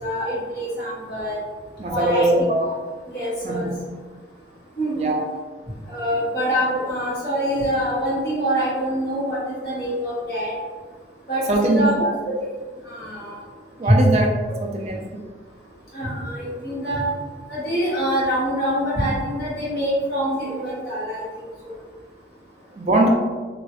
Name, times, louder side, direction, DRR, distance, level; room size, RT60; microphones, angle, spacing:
voice 1, 0.0-1.4 1.9-2.3 2.6-2.7 3.1-3.7 4.8-5.1 5.8-10.5 11.3-11.9 12.8-13.4 13.8-14.0 15.9-17.0 17.5-21.7, equal, 60° left, -9 dB, 1.4 m, -25 dB
voice 2, 1.8-2.7 3.4-3.8 5.0-5.2 11.5-12.1 13.8-14.3 14.6-15.2 22.7-23.1, right 2 dB, 35° right, 1 dB, 0.3 m, -21 dB
3.0 x 2.3 x 2.8 m, 1.5 s
head